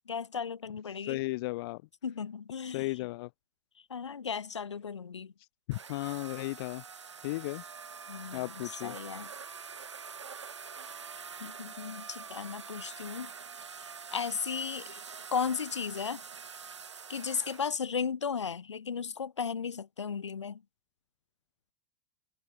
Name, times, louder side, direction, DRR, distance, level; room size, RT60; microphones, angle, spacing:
voice 1, 0.1-1.2 2.0-2.9 3.9-5.3 8.1-8.5 8.8-9.3 11.4-13.3 14.1-15.0 15.3-16.2 17.1-20.6, left 6 dB, 85° left, 1.3 m, -35 dB
voice 2, 1.0-1.8 2.7-3.3 5.7-6.8 7.2-7.6 8.3-9.0, left 20 dB, 60° left, 0.6 m, -35 dB
sound 1, 5.7-17.7, right 6 dB, 90° right, 0.8 m, -45 dB
hypercardioid pair, 90°, 15 cm